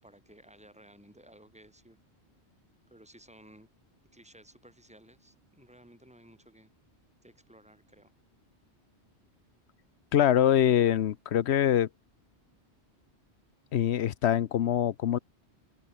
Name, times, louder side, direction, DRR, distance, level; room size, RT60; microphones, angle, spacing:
voice 1, 0.0-2.0 2.9-3.7 4.1-6.7 7.2-8.1, right 1 dB, 5° right, 4.6 m, -56 dB
voice 2, 10.1-11.9 13.7-15.2, left 10 dB, 75° left, 1.0 m, -24 dB
omnidirectional pair, 1.1 m